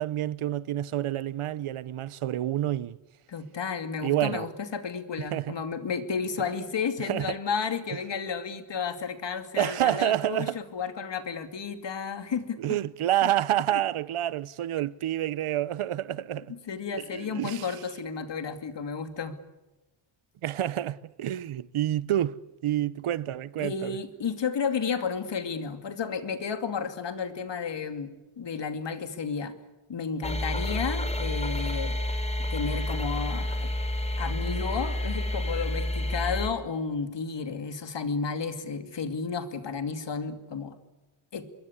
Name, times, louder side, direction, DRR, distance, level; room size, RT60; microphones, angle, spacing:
voice 1, 0.0-3.0 4.0-4.5 5.3-5.6 6.4-6.5 7.0-7.4 9.6-10.6 12.6-16.5 16.9-17.7 20.4-24.0, right 12 dB, 80° right, 1.0 m, -28 dB
voice 2, 3.3-12.6 13.7-13.8 16.5-19.4 23.6-28.1 28.4-29.5 29.9-32.0 32.5-33.7 34.2-40.8 41.3-41.5, left 5 dB, 55° left, 2.8 m, -32 dB
sound 1, 30.2-36.5, left 1 dB, 15° left, 3.8 m, -29 dB
26.5 x 22.5 x 8.2 m
wide cardioid pair, 125°, 50 cm